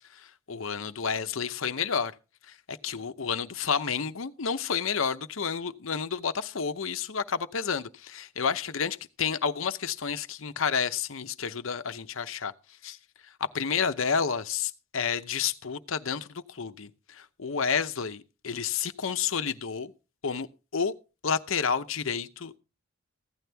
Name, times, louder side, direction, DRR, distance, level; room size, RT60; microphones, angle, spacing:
voice 1, 0.1-2.1 2.5-12.5 12.8-13.0 13.4-19.9 20.2-20.5 20.7-20.9 21.2-22.6, left 6 dB, 75° left, 0.8 m, -30 dB
15.5 x 11.0 x 3.4 m
head